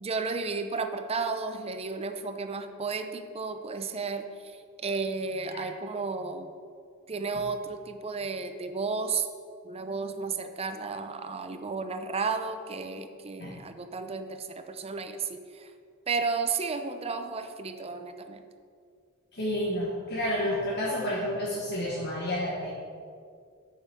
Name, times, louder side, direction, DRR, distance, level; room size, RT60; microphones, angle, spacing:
voice 1, 0.0-6.5 7.1-9.3 9.6-15.7 16.1-18.4, right 4 dB, 30° right, 8 dB, 0.5 m, -33 dB
voice 2, 19.3-22.7, equal, 55° left, -4 dB, 1.3 m, -30 dB
7.9 x 5.6 x 6.0 m, 2.2 s
head